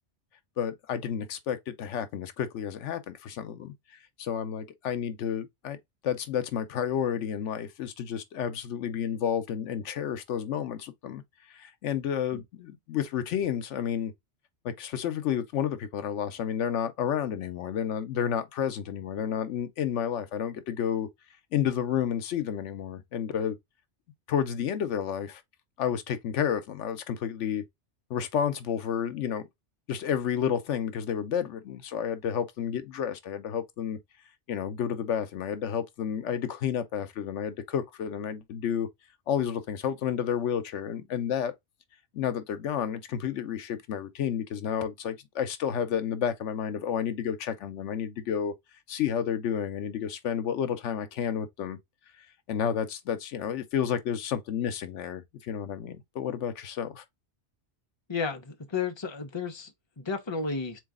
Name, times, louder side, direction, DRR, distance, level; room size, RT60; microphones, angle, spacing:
voice 1, 0.6-5.8 6.0-11.2 11.5-14.1 14.6-21.1 21.5-23.6 24.3-25.4 25.8-27.6 28.1-29.4 29.9-34.0 34.5-38.9 39.3-41.5 42.1-48.5 48.9-51.8 52.5-57.0, left 8 dB, 80° left, 1.0 m, -31 dB
voice 2, 58.1-60.8, left 5 dB, 25° left, 0.9 m, -33 dB
4.0 x 3.1 x 3.6 m
omnidirectional pair, 1.2 m